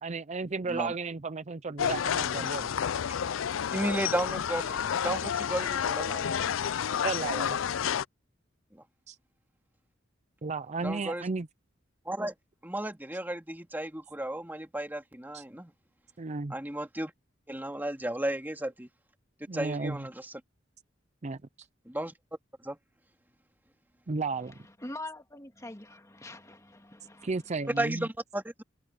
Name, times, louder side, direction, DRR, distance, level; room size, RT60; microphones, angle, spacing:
voice 1, 0.0-2.7 7.0-7.6 9.1-9.2 10.4-11.5 15.3-15.4 16.2-16.5 19.5-20.1 21.2-21.4 24.1-24.5 27.2-28.1, right 3 dB, 35° right, 0.6 m, -33 dB
sound 1, 1.8-8.0, left 8 dB, 85° left, 0.4 m, -30 dB
voice 2, 3.7-6.4 8.7-8.8 10.8-11.2 12.1-12.3 12.6-15.7 16.5-17.1 17.5-18.9 19.5-20.3 21.9-22.1 22.6-22.8 27.8-28.6, right 1 dB, 10° right, 2.2 m, -34 dB
voice 3, 24.8-27.3, left 2 dB, 15° left, 2.1 m, -43 dB
head